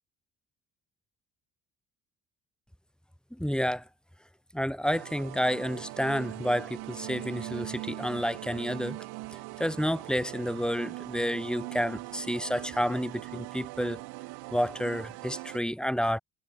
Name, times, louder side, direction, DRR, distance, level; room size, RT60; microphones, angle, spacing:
voice 1, 3.3-3.8 4.5-9.0 9.3-14.0 14.5-16.2, equal, ahead, 2.2 m, -30 dB
sound 1, 4.8-15.6, right 23 dB, 70° right, 2.2 m, -41 dB
hypercardioid pair, 50°, 39 cm